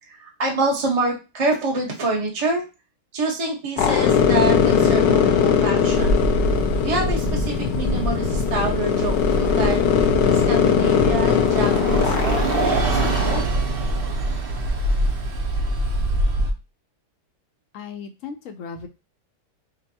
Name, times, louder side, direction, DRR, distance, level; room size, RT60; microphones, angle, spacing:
voice 1, 0.0-2.6 3.1-6.2 6.8-9.8 10.3-13.4, right 2 dB, 25° right, 0 dB, 0.8 m, -27 dB
sound 1, 3.8-13.4, left 7 dB, 85° left, 1.2 m, -20 dB
Bus, 5.8-16.5, right 2 dB, 70° right, 0.5 m, -24 dB
voice 2, 17.7-18.9, left 5 dB, 70° left, 7 dB, 0.8 m, -36 dB
5.1 x 2.2 x 2.7 m, 0.28 s
omnidirectional pair, 1.8 m